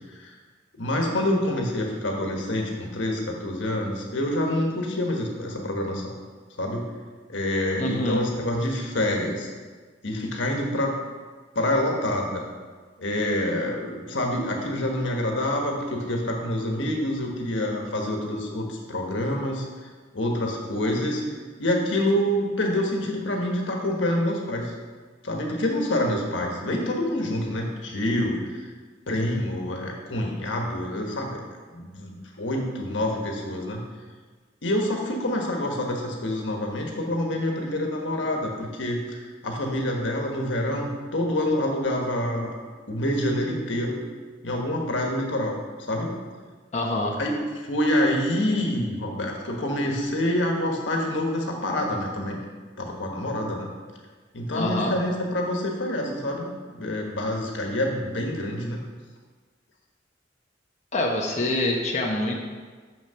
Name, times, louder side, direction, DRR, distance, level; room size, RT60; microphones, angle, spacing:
voice 1, 0.8-6.1 6.6-6.9 7.3-9.5 10.0-11.0 11.5-12.5 13.0-19.7 20.1-24.7 25.2-28.7 29.1-31.4 31.7-33.8 34.6-42.5 42.9-44.0 44.4-45.6 45.9-46.2 47.2-52.4 52.8-53.7 54.3-58.8, left 1 dB, 90° left, 1 dB, 1.4 m, -27 dB
voice 2, 7.8-8.2 46.7-47.1 54.5-54.9 60.9-62.4, left 1 dB, 40° left, -1 dB, 1.0 m, -25 dB
6.8 x 6.5 x 5.7 m, 1.5 s
head